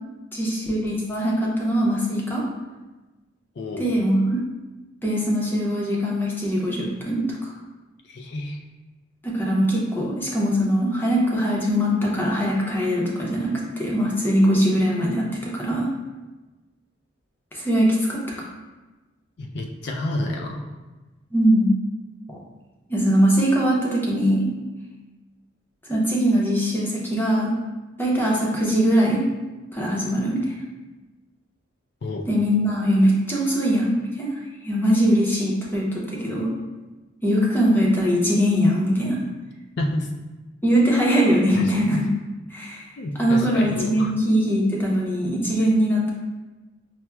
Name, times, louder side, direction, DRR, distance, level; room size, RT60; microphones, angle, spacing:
voice 1, 0.3-2.4 3.8-4.4 5.0-7.5 9.2-15.9 17.5-18.5 21.3-21.8 22.3-22.4 22.9-24.5 25.9-27.5 28.0-29.3 29.7-30.5 32.3-34.3 34.6-36.5 37.2-39.2 40.6-42.0 42.5-42.8 43.2-46.1, equal, 10° left, -4 dB, 0.6 m, -21 dB
voice 2, 3.6-3.9 8.0-8.6 19.4-20.7 32.0-32.3 39.8-40.1 41.5-41.6 41.9-42.0 43.0-44.1, left 1 dB, 60° left, 1 dB, 0.4 m, -29 dB
5.7 x 2.1 x 2.2 m, 1.2 s
head